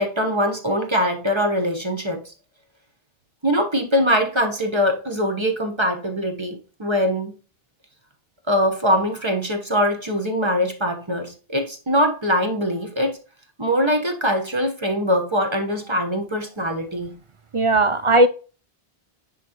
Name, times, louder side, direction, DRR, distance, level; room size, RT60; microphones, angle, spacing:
voice 1, 0.0-2.3 3.4-7.3 8.5-13.2 13.6-17.2, equal, 30° right, 4 dB, 1.2 m, -22 dB
voice 2, 17.5-18.3, right 2 dB, 50° right, 11 dB, 0.4 m, -16 dB
10.0 x 4.0 x 3.0 m, 0.36 s
omnidirectional pair, 1.0 m